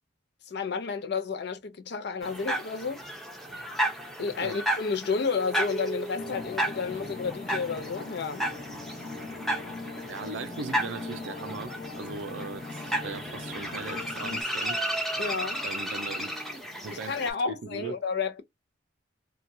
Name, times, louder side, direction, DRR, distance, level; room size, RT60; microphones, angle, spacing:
voice 1, 0.5-3.0 4.2-8.4 15.2-15.6 16.9-18.4, left 5 dB, 60° left, 0.5 m, -31 dB
sound 1, 2.2-17.3, right 1 dB, ahead, 0.7 m, -33 dB
sound 2, 6.2-14.4, left 3 dB, 40° left, 1.0 m, -40 dB
voice 2, 10.1-14.8 15.6-16.3 16.8-18.0, right 4 dB, 80° right, 0.5 m, -39 dB
2.9 x 2.3 x 2.6 m
head